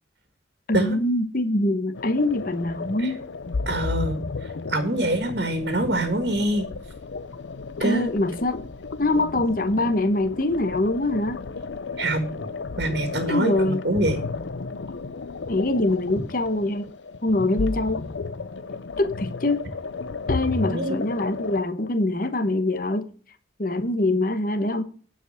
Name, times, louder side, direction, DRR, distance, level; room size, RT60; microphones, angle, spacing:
voice 1, 0.7-3.2 7.8-8.7 9.0-11.4 13.3-13.8 15.5-16.9 17.2-18.1 19.0-19.6 20.3-23.0 23.6-24.8, left 2 dB, 45° left, 1.1 m, -24 dB
sound 1, 1.9-21.6, left 4 dB, 75° left, 0.6 m, -33 dB
voice 2, 3.6-6.6 7.8-8.1 12.0-12.3 12.8-14.2 20.7-21.0, right 1 dB, 60° right, 1.7 m, -25 dB
9.8 x 5.1 x 6.4 m
head